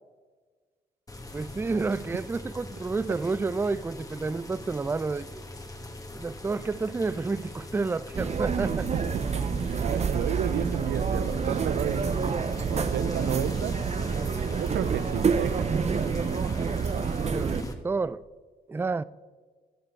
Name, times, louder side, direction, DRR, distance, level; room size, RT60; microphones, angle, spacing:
sound 1, 1.1-17.7, left 2 dB, 20° left, 1.5 m, -42 dB
voice 1, 1.3-5.4 6.1-8.9 17.2-18.2 18.7-19.0, right 4 dB, 15° right, 0.3 m, -30 dB
sound 2, 8.1-17.6, right 5 dB, 40° right, 0.7 m, -28 dB
voice 2, 8.9-12.0 12.7-13.8 14.5-15.8, right 11 dB, 85° right, 0.4 m, -33 dB
16.0 x 6.7 x 4.5 m
supercardioid pair, 60°, 17 cm